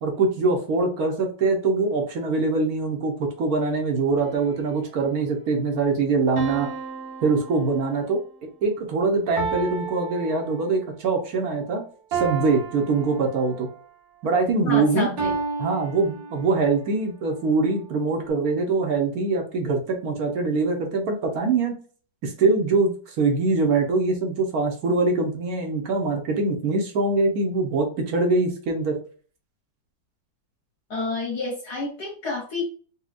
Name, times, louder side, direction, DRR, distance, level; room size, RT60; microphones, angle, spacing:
voice 1, 0.0-6.7 7.2-8.2 8.6-11.8 12.1-13.7 14.2-15.1 15.6-21.7 22.2-29.0, right 3 dB, 60° right, 2 dB, 1.2 m, -23 dB
sound 1, 4.2-5.0 6.4-8.2 9.4-11.0 12.1-13.8 15.2-16.8, right 5 dB, 75° right, 1.7 m, -33 dB
voice 2, 14.6-15.4 30.9-32.6, left 3 dB, 60° left, -4 dB, 1.7 m, -29 dB
4.3 x 2.3 x 2.4 m, 0.40 s
omnidirectional pair, 2.1 m